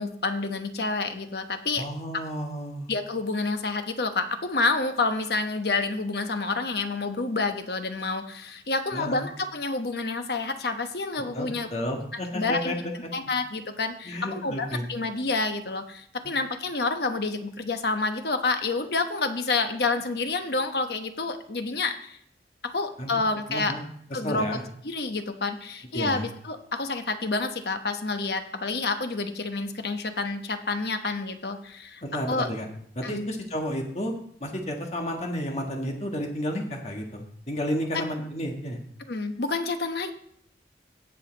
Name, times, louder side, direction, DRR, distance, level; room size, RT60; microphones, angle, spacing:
voice 1, 0.0-1.8 2.9-11.7 12.3-12.7 13.1-22.2 22.6-23.7 24.1-24.6 24.8-32.0 32.3-32.5 33.0-33.3 37.9-38.0 39.1-40.1, left 3 dB, 65° left, 7 dB, 1.0 m, -28 dB
voice 2, 1.8-2.9 8.9-9.2 11.3-13.1 14.0-14.8 16.2-16.3 23.0-23.2 23.5-23.8 24.2-24.6 25.9-26.3 32.0-32.7 32.9-34.1 34.4-38.8, equal, 40° left, 2 dB, 1.7 m, -31 dB
16.5 x 5.6 x 4.0 m, 0.66 s
head